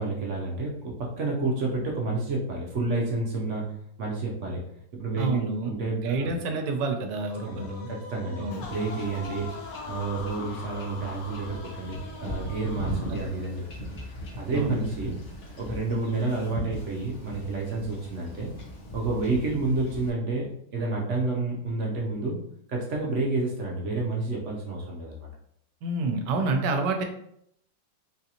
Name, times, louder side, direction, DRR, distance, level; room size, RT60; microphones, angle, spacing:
voice 1, 0.0-3.7 4.0-4.6 4.9-6.3 7.5-9.5 9.9-13.6 14.3-15.2 15.6-18.5 18.9-22.4 22.7-25.3, right 3 dB, 60° right, -2 dB, 0.8 m, -30 dB
voice 2, 5.2-7.9 8.4-8.6 13.1-13.2 14.5-14.8 25.8-27.0, right 3 dB, 80° right, 4 dB, 1.2 m, -28 dB
sound 1, 7.1-13.5, left 4 dB, 70° left, 1.1 m, -42 dB
Wind / Ocean / Boat Water vehicle, 8.5-20.1, equal, 50° left, 0.8 m, -40 dB
3.8 x 2.5 x 2.8 m, 0.72 s
omnidirectional pair, 1.8 m